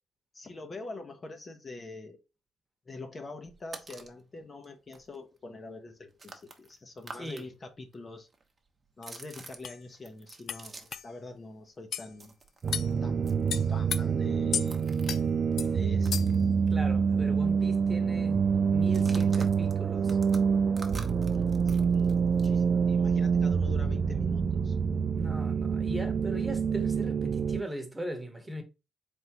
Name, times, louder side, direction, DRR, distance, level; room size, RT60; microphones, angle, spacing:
voice 1, 0.3-2.2 2.9-8.3 9.0-12.3 13.0-13.2 13.5-14.9 15.7-16.3 21.3-24.8, left 3 dB, 35° left, 0.8 m, -45 dB
sound 1, 3.4-4.2 4.6-4.7 4.9-7.5 7.7-11.1 11.4-17.0 17.3-17.4 17.7-18.1 18.8-22.6, right 3 dB, 35° right, 0.9 m, -49 dB
sound 2, 9.0-9.1 9.6-9.8 10.5-10.6 10.9-11.0 11.9-12.1 12.7-12.9 13.5-14.0 14.5-14.7 15.1-15.2 15.6-15.7 16.1-16.4, left 8 dB, 60° left, 0.3 m, -33 dB
sound 3, 12.6-27.6, right 6 dB, 50° right, 0.4 m, -26 dB
voice 2, 16.7-18.5 18.7-20.2 25.2-28.6, equal, 10° right, 1.1 m, -39 dB
3.9 x 3.5 x 2.9 m
cardioid pair, 90°, 0 cm